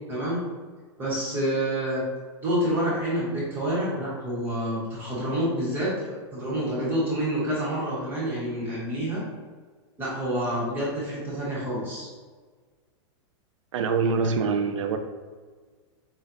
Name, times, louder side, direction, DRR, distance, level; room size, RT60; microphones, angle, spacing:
voice 1, 0.1-0.4 1.0-2.0 2.4-9.2 10.0-12.1, equal, 15° right, -8 dB, 1.2 m, -28 dB
voice 2, 13.7-15.0, right 5 dB, 85° right, 6 dB, 0.6 m, -24 dB
7.2 x 2.5 x 2.7 m, 1.5 s
supercardioid pair, 175°, 16 cm